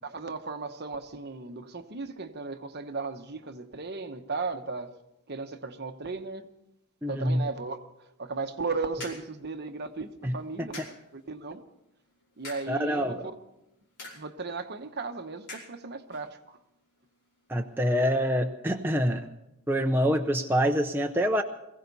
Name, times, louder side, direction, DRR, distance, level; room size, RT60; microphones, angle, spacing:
voice 1, 0.0-4.9 5.3-6.5 7.1-7.9 8.2-11.6 12.4-13.2 14.1-16.6, right 4 dB, 45° right, 1.1 m, -36 dB
voice 2, 7.0-7.4 10.2-10.7 12.7-13.2 17.5-19.3 19.7-21.4, equal, 10° right, 0.6 m, -26 dB
sound 1, 8.5-17.9, left 2 dB, 50° left, 5.0 m, -50 dB
21.5 x 16.0 x 4.1 m
head